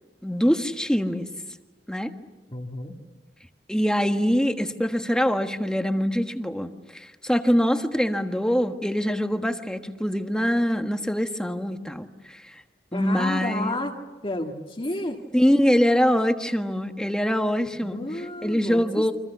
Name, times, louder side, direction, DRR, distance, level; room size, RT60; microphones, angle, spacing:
voice 1, 0.2-1.3 1.9-2.1 3.7-6.7 6.9-12.5 12.9-13.8 15.3-18.0 18.4-19.1, equal, 5° left, 6 dB, 1.5 m, -24 dB
voice 2, 2.5-3.0 12.9-14.0 14.2-15.2 17.8-19.1, left 1 dB, 30° left, 0 dB, 1.9 m, -31 dB
29.5 x 25.0 x 7.1 m, 1.2 s
head